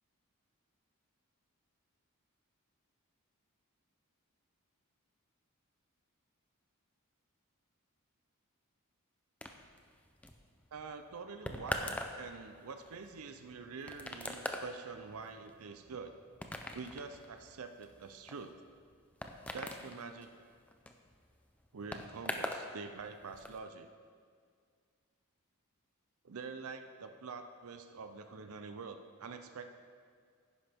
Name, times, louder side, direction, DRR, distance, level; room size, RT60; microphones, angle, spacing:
sound 1, 9.4-22.7 23.0-23.6, left 1 dB, 5° left, 0.5 m, -43 dB
voice 1, 10.7-16.2 16.7-18.5 19.5-20.3 21.7-23.9 26.2-29.7, right 4 dB, 80° right, 7 dB, 0.6 m, -46 dB
10.5 x 10.0 x 3.5 m, 2.1 s
head